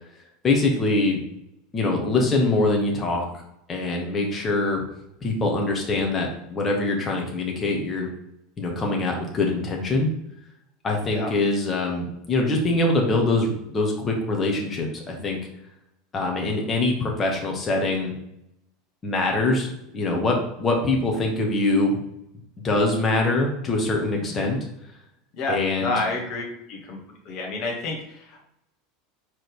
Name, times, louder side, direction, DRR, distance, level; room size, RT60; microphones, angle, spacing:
voice 1, 0.4-1.2 1.7-3.4 3.7-4.8 5.2-8.1 8.6-10.1 10.8-15.4 16.1-18.1 19.0-22.0 22.6-24.6 25.5-26.0, left 2 dB, 25° left, 0 dB, 1.9 m, -23 dB
voice 2, 25.3-26.4 26.7-27.0 27.3-28.4, left 2 dB, 45° left, 0 dB, 2.0 m, -29 dB
5.3 x 4.2 x 5.0 m, 0.79 s
figure-of-eight pair, 80°, 0 cm